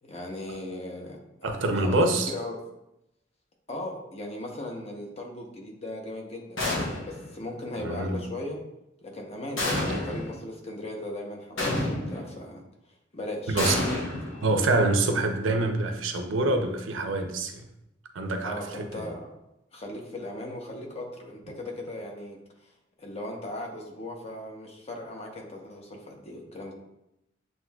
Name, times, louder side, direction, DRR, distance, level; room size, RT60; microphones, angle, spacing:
voice 1, 0.0-2.6 3.7-6.6 7.0-8.6 9.0-12.6 13.1-13.6 18.4-19.3 19.7-22.4 22.6-22.7 23.0-26.7, left 1 dB, 35° left, 0 dB, 0.8 m, -38 dB
voice 2, 1.4-2.3 7.8-8.2 13.5-13.8 14.4-17.5 18.1-18.6, right 2 dB, 85° right, 4 dB, 0.6 m, -25 dB
sound 1, 6.6-7.3 9.6-10.4 11.6-12.3 13.6-14.8, left 1 dB, 80° left, 1.0 m, -29 dB
7.4 x 2.7 x 2.3 m, 0.86 s
head